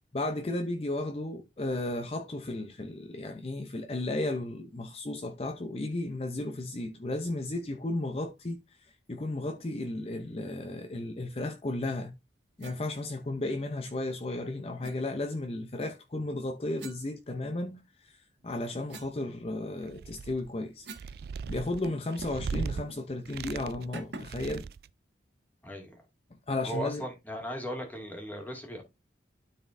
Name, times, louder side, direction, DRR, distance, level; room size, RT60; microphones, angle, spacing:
voice 1, 0.1-12.1 12.6-20.9 21.5-24.7 26.5-27.0, left 2 dB, 35° left, 0.6 m, -34 dB
sound 1, 12.6-12.8 14.8-15.0 16.8-17.8 18.3-21.2 21.4-21.5 21.8-22.5 22.9-23.0 23.9-24.5, right 2 dB, 80° right, 1.4 m, -47 dB
sound 2, 19.8-20.5 20.9-22.8 23.3-23.9 24.2-24.9, right 5 dB, 60° right, 0.3 m, -37 dB
voice 2, 25.6-26.0 26.6-28.8, equal, 10° left, 2.1 m, -37 dB
12.5 x 4.2 x 2.6 m
head